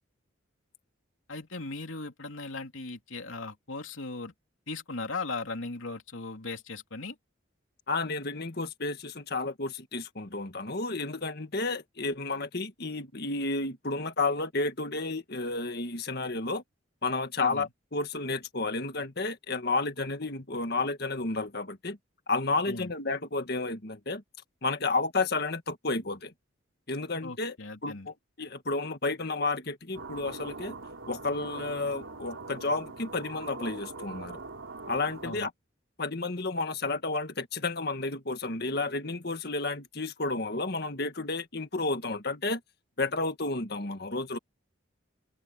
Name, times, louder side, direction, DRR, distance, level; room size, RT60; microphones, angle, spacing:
voice 1, 1.3-4.3 4.7-7.1 17.4-17.7 22.7-22.9 27.2-28.1 35.2-35.5, left 3 dB, 80° left, 3.0 m, -38 dB
voice 2, 7.9-16.6 17.0-22.0 22.3-24.2 24.6-26.3 26.9-27.6 27.8-30.8 31.1-34.4 34.9-35.5 36.0-42.6 43.0-44.4, left 3 dB, 50° left, 1.8 m, -31 dB
sound 1, 29.9-35.5, right 3 dB, 85° right, 3.0 m, -42 dB
open air
head